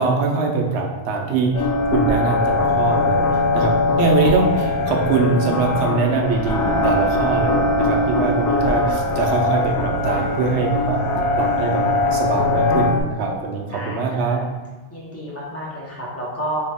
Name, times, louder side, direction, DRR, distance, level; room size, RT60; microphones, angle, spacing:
voice 1, 0.0-3.2 3.5-11.0 11.4-11.8 12.1-14.4, right 4 dB, 85° right, 1 dB, 0.9 m, -22 dB
sound 1, 1.5-13.0, left 2 dB, 70° left, 0.8 m, -20 dB
voice 2, 4.1-4.8 8.5-8.7 13.7-14.4 14.9-16.7, equal, 15° left, -6 dB, 1.0 m, -31 dB
4.1 x 2.8 x 3.5 m, 1.2 s
omnidirectional pair, 1.1 m